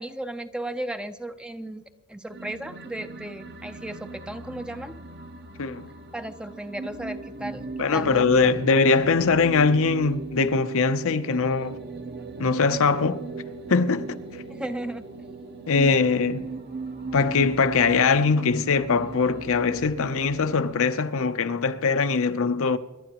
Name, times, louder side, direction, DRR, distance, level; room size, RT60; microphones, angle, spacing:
voice 1, 0.0-1.8 2.1-4.9 6.1-8.6 14.5-15.1, right 1 dB, 5° right, 0.5 m, -35 dB
sound 1, 2.3-20.9, right 3 dB, 50° right, 1.0 m, -38 dB
voice 2, 5.6-5.9 7.8-11.8 12.4-13.2 13.7-14.2 15.7-16.5 17.1-22.8, left 4 dB, 65° left, 0.7 m, -22 dB
26.5 x 11.5 x 3.0 m
head